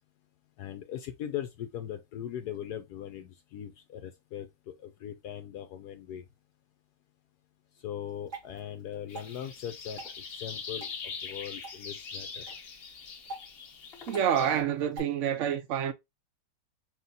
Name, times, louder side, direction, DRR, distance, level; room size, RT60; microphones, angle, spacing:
voice 1, 0.6-6.2 7.8-10.0 10.4-12.4, left 10 dB, 75° left, 1.0 m, -40 dB
Water / Drip, 8.0-15.0, right 2 dB, 40° right, 3.2 m, -48 dB
sound 1, 9.1-14.6, left 5 dB, 55° left, 0.7 m, -42 dB
voice 2, 14.1-15.9, right 9 dB, 65° right, 0.7 m, -28 dB
5.9 x 2.8 x 2.7 m
omnidirectional pair, 1.9 m